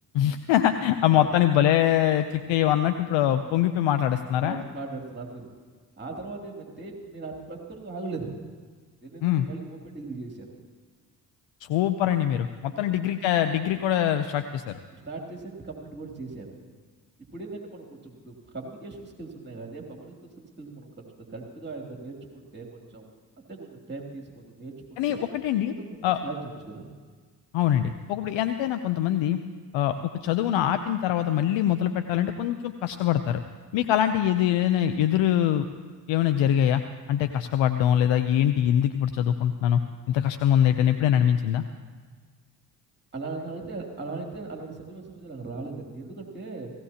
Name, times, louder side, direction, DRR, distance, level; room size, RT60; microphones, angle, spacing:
voice 1, 0.1-4.6 9.2-9.5 11.6-14.8 25.0-25.7 26.0-26.2 27.5-29.4 29.7-29.9 30.2-33.4 33.7-35.7 36.1-36.8 37.1-39.8 40.1-41.6, left 11 dB, 65° left, 9 dB, 0.7 m, -23 dB
voice 2, 4.4-5.5 6.0-8.4 9.0-10.5 12.7-13.0 15.0-16.6 17.3-23.1 23.4-25.3 25.7-26.4 26.6-26.9 43.1-46.7, right 3 dB, 20° right, 0 dB, 2.9 m, -39 dB
17.0 x 16.5 x 2.9 m, 1.5 s
hypercardioid pair, 45°, 49 cm